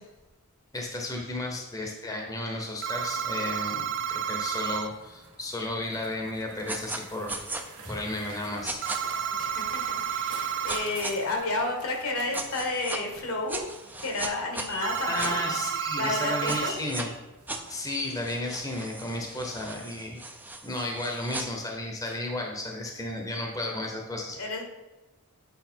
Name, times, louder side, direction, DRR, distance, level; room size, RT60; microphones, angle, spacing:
voice 1, 0.7-8.8 14.7-17.1 17.7-20.2 20.6-24.4, left 1 dB, 15° left, 1 dB, 0.9 m, -33 dB
sound 1, 2.8-4.9 8.8-10.9 14.8-16.7, right 8 dB, 55° right, 0.5 m, -31 dB
sound 2, 3.0-19.5, right 4 dB, 85° right, 1.4 m, -50 dB
sound 3, 6.7-7.0 7.3-7.6 8.6-9.0 10.7-11.1 12.3-13.0 13.5-15.3 16.4-17.1 17.5-21.4, right 2 dB, 10° right, 0.5 m, -37 dB
voice 2, 9.4-13.6 14.0-15.4 16.0-16.7 24.4-24.6, left 2 dB, 70° left, 2 dB, 1.6 m, -31 dB
8.2 x 4.8 x 4.5 m, 1.1 s
head